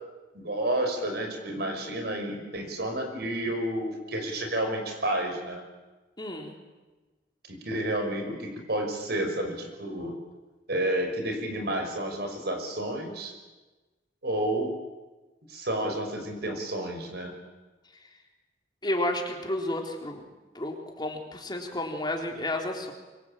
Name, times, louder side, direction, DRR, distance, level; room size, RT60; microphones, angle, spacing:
voice 1, 0.3-5.6 7.5-10.1 10.7-13.3 14.2-14.7 15.5-17.3, right 1 dB, 65° right, 5 dB, 6.1 m, -30 dB
voice 2, 6.2-6.6 18.8-20.2 20.5-22.9, left 1 dB, 25° left, 2 dB, 3.7 m, -31 dB
24.5 x 24.5 x 9.0 m, 1.2 s
head